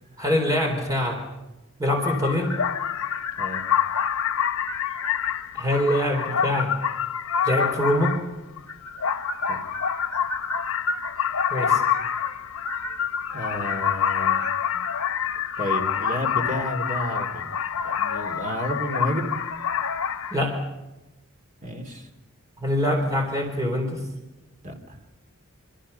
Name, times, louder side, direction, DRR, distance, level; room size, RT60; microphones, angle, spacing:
voice 1, 0.2-1.2 1.8-2.5 5.5-6.7 7.4-8.2 11.5-11.8 20.3-20.6 22.6-24.0, left 1 dB, 15° right, 1 dB, 3.9 m, -24 dB
sound 1, 2.0-20.4, left 7 dB, 85° left, 1.1 m, -27 dB
voice 2, 13.3-14.5 15.6-19.3 21.6-22.1 24.6-25.0, equal, 35° right, 4 dB, 2.8 m, -31 dB
27.0 x 25.0 x 5.6 m, 1.0 s
head